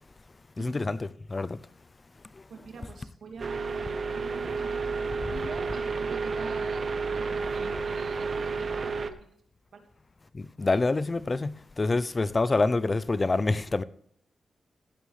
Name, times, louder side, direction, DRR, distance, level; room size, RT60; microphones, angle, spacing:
voice 1, 0.6-1.6 10.3-13.8, left 3 dB, 35° left, 0.6 m, -27 dB
voice 2, 2.5-3.8 4.1-4.9 5.3-9.3 9.7-9.8, right 4 dB, 75° right, 2.6 m, -44 dB
sound 1, 3.4-9.1, right 4 dB, 55° right, 1.0 m, -31 dB
15.5 x 11.0 x 3.3 m
cardioid pair, 80°, 0 cm